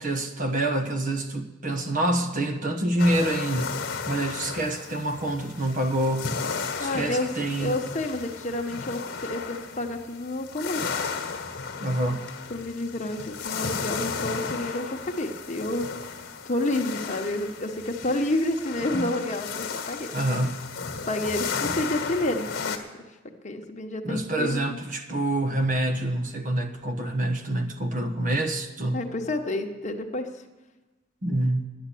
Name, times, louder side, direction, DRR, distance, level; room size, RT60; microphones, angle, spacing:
voice 1, 0.0-3.7 4.1-6.3 6.8-7.8 11.8-12.3 18.9-19.1 20.1-20.7 24.0-29.0 31.2-31.7, right 1 dB, 45° right, 7 dB, 1.1 m, -26 dB
sound 1, 3.0-22.8, left 5 dB, 60° left, 1.4 m, -34 dB
voice 2, 6.8-7.3 7.6-10.9 12.5-15.9 16.4-20.1 21.1-22.8 23.4-24.6 28.9-30.3, left 1 dB, 40° left, 3 dB, 1.2 m, -29 dB
10.0 x 9.6 x 8.4 m, 1.1 s
head